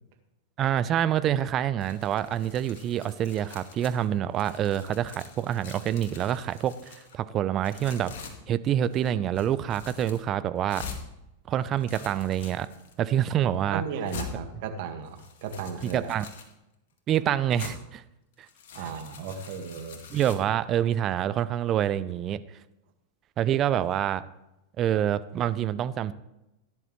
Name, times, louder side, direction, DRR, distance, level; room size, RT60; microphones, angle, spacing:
voice 1, 0.6-8.1 8.5-10.8 11.5-12.7 13.0-13.8 15.8-16.3 17.1-18.0 20.1-22.4 23.4-24.2 24.8-26.1, right 10 dB, 35° right, 15 dB, 0.7 m, -26 dB
sound 1, 1.8-4.1 4.3-7.2 7.6-8.3 8.8-9.1 9.3-10.2 10.7-11.0 11.6-12.9 13.5-13.6 14.1-14.3 15.1-16.5 17.6-17.7 18.3-20.4, left 6 dB, 60° left, 2.1 m, -45 dB
voice 2, 13.7-16.1 18.7-20.0, right 6 dB, 55° right, 6 dB, 1.9 m, -35 dB
16.5 x 11.0 x 3.3 m, 0.90 s
figure-of-eight pair, 95°, 0 cm